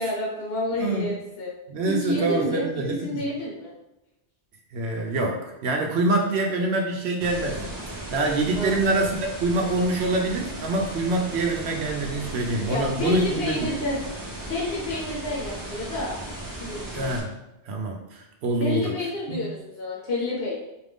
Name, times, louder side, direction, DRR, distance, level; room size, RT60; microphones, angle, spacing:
voice 1, 0.0-1.5 1.9-3.7 8.5-9.1 12.7-14.0 14.5-16.2 16.6-17.1 18.6-20.6, left 2 dB, 60° left, -4 dB, 1.0 m, -29 dB
voice 2, 0.8-1.1 1.7-3.2 4.7-7.7 8.1-13.7 16.9-17.3 17.6-18.9 19.3-19.4, right 2 dB, 70° right, 1 dB, 0.8 m, -25 dB
sound 1, 7.2-17.2, right 1 dB, 25° right, 0.6 m, -36 dB
4.5 x 2.5 x 3.4 m, 0.95 s
omnidirectional pair, 1.2 m